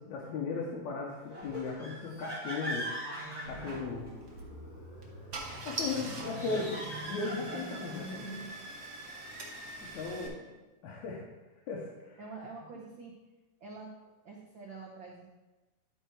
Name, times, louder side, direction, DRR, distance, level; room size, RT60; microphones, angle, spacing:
voice 1, 0.0-2.9 3.5-4.1 5.7-6.8 7.1-8.3 10.0-10.4 10.8-11.2 11.7-12.2, left 4 dB, 80° left, -3 dB, 2.3 m, -36 dB
sound 1, 1.3-4.4 6.0-8.0, equal, 10° right, 2.5 m, -41 dB
sound 2, 3.4-8.4, equal, 35° left, 2.0 m, -46 dB
Car / Engine starting, 4.2-4.4 5.0-5.1 5.3-10.3, right 2 dB, 50° right, 1.1 m, -42 dB
voice 2, 12.2-13.1 13.6-13.9 14.2-15.2, right 4 dB, 75° right, -1 dB, 1.1 m, -46 dB
11.5 x 4.6 x 4.6 m, 1.1 s
omnidirectional pair, 3.4 m